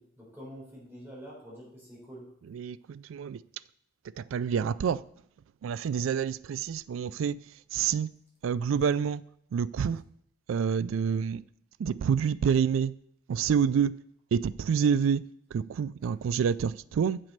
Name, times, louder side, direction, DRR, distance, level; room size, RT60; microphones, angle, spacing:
voice 1, 0.0-2.2 16.0-16.1, equal, 10° right, 4.0 m, -46 dB
voice 2, 2.5-3.4 4.2-5.0 5.6-7.4 7.7-8.1 8.4-9.2 9.5-10.0 10.5-11.4 11.8-12.9 13.3-14.0 14.3-17.2, right 7 dB, 85° right, 0.3 m, -28 dB
7.6 x 6.4 x 5.2 m
head